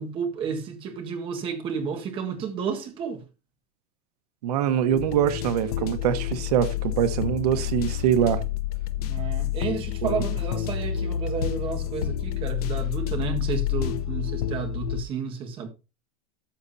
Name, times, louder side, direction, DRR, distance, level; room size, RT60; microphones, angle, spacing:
voice 1, 0.0-3.2 9.0-15.7, right 6 dB, 25° right, 1.7 m, -31 dB
voice 2, 4.4-8.4 10.0-10.4, right 9 dB, 90° right, 1.4 m, -24 dB
sound 1, 4.9-15.0, left 11 dB, 75° left, 0.9 m, -29 dB
13.5 x 7.5 x 2.8 m
supercardioid pair, 170°, 19 cm